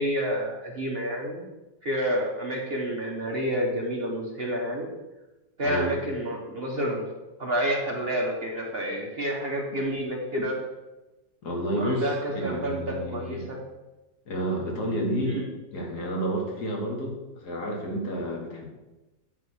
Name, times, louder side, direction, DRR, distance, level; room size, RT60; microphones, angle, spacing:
voice 1, 0.0-1.4 1.8-4.9 5.6-7.0 7.4-10.6 11.7-13.6 15.2-15.4, equal, 40° right, -2 dB, 1.2 m, -29 dB
voice 2, 5.6-6.0 11.4-12.0 12.3-13.4 14.3-15.4 15.7-18.7, equal, 65° left, 0 dB, 2.1 m, -30 dB
9.8 x 3.4 x 6.3 m, 1.1 s
omnidirectional pair, 1.9 m